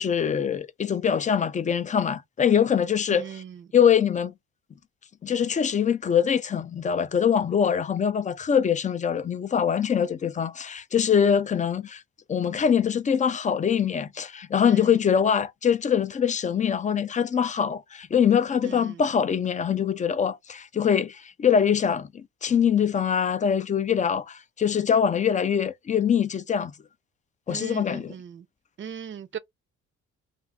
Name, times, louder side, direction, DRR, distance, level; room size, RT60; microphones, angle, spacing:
voice 1, 0.0-3.4 3.7-4.3 5.2-12.0 12.3-26.7 27.5-28.1, left 7 dB, 25° left, 0.3 m, -23 dB
voice 2, 3.1-3.7 14.6-15.1 18.6-19.0 27.5-28.5 28.8-29.4, right 8 dB, 40° right, 0.5 m, -39 dB
2.4 x 2.4 x 3.5 m
cardioid pair, 90°, 30 cm